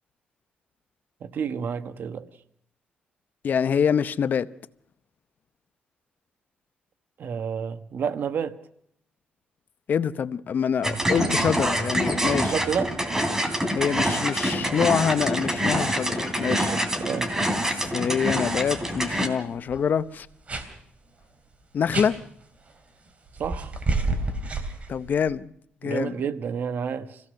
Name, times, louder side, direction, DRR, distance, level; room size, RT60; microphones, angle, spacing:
voice 1, 1.2-2.3 7.2-8.6 12.1-13.0 16.4-17.3 23.4-23.7 25.8-27.2, right 7 dB, 60° right, 1.3 m, -30 dB
voice 2, 3.4-4.5 9.9-12.5 13.7-16.7 17.6-20.3 21.7-22.2 24.9-25.5 25.8-26.2, left 7 dB, 55° left, 0.7 m, -25 dB
sound 1, 10.8-19.3, equal, 15° right, 3.0 m, -26 dB
sound 2, 19.2-19.3 19.6-19.8 20.5-20.7 21.9-22.1 23.4-25.3, right 3 dB, 35° right, 3.4 m, -29 dB
26.5 x 17.0 x 6.5 m
cardioid pair, 100°, 4 cm